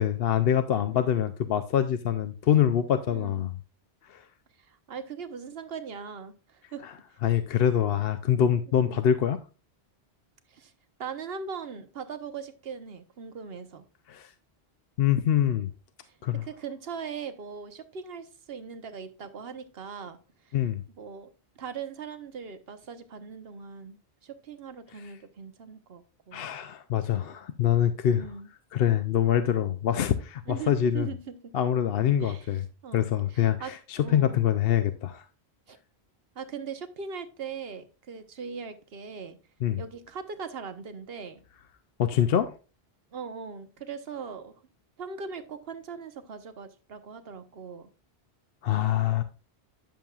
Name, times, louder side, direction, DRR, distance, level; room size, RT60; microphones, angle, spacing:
voice 1, 0.0-3.5 4.1-4.2 6.8-6.9 7.2-9.4 14.1-14.3 15.0-15.7 16.2-16.4 20.5-20.8 26.3-28.3 28.7-31.1 31.5-32.7 32.9-35.2 39.6-39.8 42.0-42.5 48.6-49.2, left 10 dB, 70° left, 0.8 m, -25 dB
voice 2, 0.9-1.2 3.1-3.4 4.7-6.8 8.7-9.0 10.5-10.7 11.0-13.8 16.0-16.1 16.4-20.2 20.5-20.6 21.0-21.3 21.6-26.4 28.1-28.5 30.5-31.5 32.2-32.5 32.8-34.4 35.7-35.8 36.3-39.4 39.8-41.4 43.1-44.5 45.0-47.9, right 6 dB, 70° right, 1.2 m, -40 dB
10.5 x 7.0 x 2.4 m
omnidirectional pair, 1.1 m